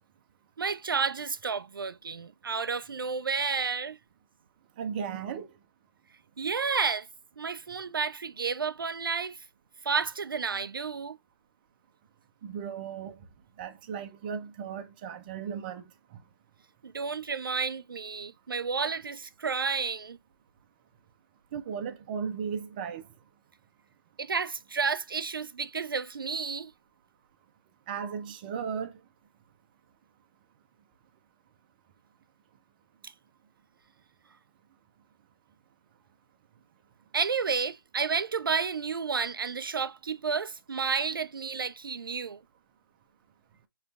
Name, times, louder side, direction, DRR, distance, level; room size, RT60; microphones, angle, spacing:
voice 1, 0.6-4.0 6.4-7.1 7.4-9.4 9.8-11.2 16.8-20.2 24.2-26.7 37.1-42.4, right 5 dB, 70° right, 0.4 m, -31 dB
voice 2, 4.8-5.6 12.4-13.3 13.6-16.2 21.5-23.1 27.9-29.0, right 7 dB, 25° right, 0.6 m, -36 dB
6.5 x 3.1 x 2.3 m
figure-of-eight pair, 145°, 12 cm